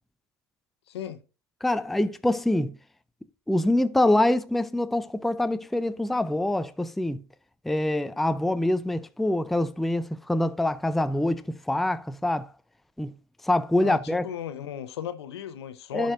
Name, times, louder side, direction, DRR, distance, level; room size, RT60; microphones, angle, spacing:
voice 1, 0.9-1.2 13.8-16.1, left 10 dB, 80° left, 0.8 m, -36 dB
voice 2, 1.6-2.7 3.5-7.2 7.7-11.4 11.7-12.5 13.0-13.1 13.5-14.2 15.9-16.1, left 1 dB, ahead, 0.4 m, -25 dB
11.0 x 5.2 x 2.5 m
hypercardioid pair, 100°, 13 cm